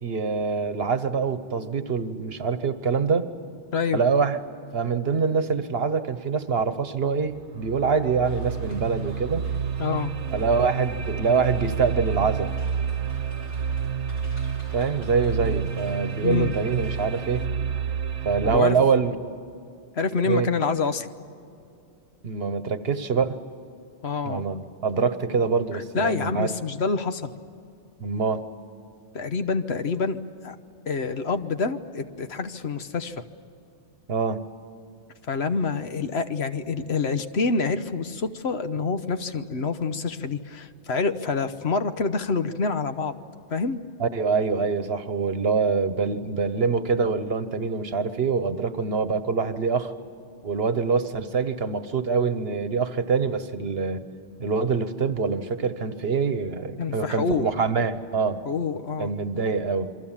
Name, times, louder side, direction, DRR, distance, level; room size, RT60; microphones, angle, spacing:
voice 1, 0.0-3.3 3.9-4.4 4.7-9.4 10.3-12.5 14.7-17.5 18.2-19.1 20.2-20.5 22.2-23.3 24.2-26.5 28.0-28.4 34.1-34.4 44.0-49.9 50.4-54.0 54.4-58.4 59.0-59.9, right 5 dB, 60° right, 11 dB, 1.3 m, -25 dB
sound 1, 7.2-18.6, right 7 dB, 75° right, 1.3 m, -30 dB
sound 2, 8.2-17.5, right 1 dB, 45° left, 3.4 m, -48 dB
voice 2, 9.8-10.1 16.2-16.5 18.4-18.8 19.9-21.1 24.0-24.4 25.7-27.3 29.1-30.6 30.9-33.2 35.3-43.2 43.5-43.8 56.8-57.5 58.4-59.1, left 4 dB, 65° left, 9 dB, 1.2 m, -27 dB
28.5 x 23.0 x 7.4 m, 2.5 s
omnidirectional pair, 1.2 m